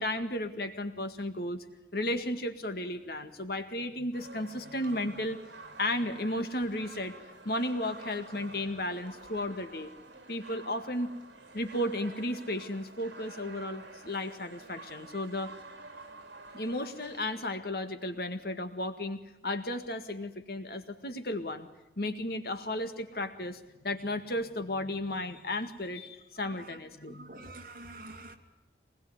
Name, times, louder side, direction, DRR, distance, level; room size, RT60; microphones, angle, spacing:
voice 1, 0.0-1.7 1.9-5.4 5.8-7.2 7.5-9.9 10.3-11.1 11.5-15.5 16.5-21.7 22.0-27.4, left 1 dB, 55° left, 8 dB, 1.9 m, -34 dB
sound 1, 4.1-17.3, right 3 dB, 65° right, 3.9 m, -50 dB
voice 2, 27.0-28.3, right 2 dB, 50° right, 3 dB, 3.0 m, -46 dB
25.0 x 20.5 x 9.6 m, 0.95 s
head